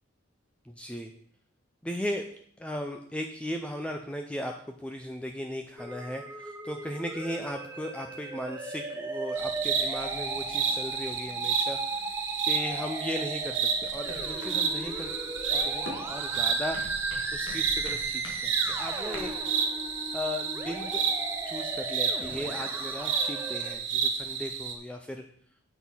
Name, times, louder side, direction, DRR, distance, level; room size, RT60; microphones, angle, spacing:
voice 1, 0.6-1.1 1.8-2.3 2.6-15.1 15.5-19.3 20.1-21.0 21.5-25.2, left 1 dB, 5° left, 4 dB, 0.5 m, -37 dB
Musical instrument, 5.8-23.7, right 2 dB, 10° right, 0.9 m, -37 dB
sound 1, 9.4-24.7, right 6 dB, 80° right, 1.6 m, -31 dB
sound 2, 13.8-19.4, left 1 dB, 70° left, 2.1 m, -45 dB
8.6 x 6.0 x 5.5 m, 0.62 s
head